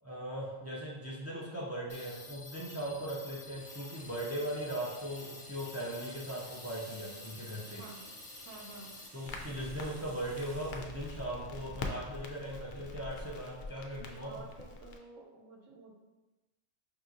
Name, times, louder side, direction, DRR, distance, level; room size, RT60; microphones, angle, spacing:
voice 1, 0.0-7.8 9.1-14.4, right 1 dB, 20° right, -5 dB, 0.4 m, -39 dB
sound 1, 1.9-9.1, left 3 dB, 60° left, 0.8 m, -50 dB
Water tap faucet / Sink (filling or washing), 3.4-12.7, right 1 dB, 35° right, 0.8 m, -55 dB
voice 2, 8.4-8.9 14.2-15.9, right 3 dB, 70° right, 1 dB, 1.0 m, -51 dB
Crackle, 9.3-15.0, left 2 dB, 75° left, 0.4 m, -44 dB
5.4 x 2.8 x 2.5 m, 1.1 s
omnidirectional pair, 1.4 m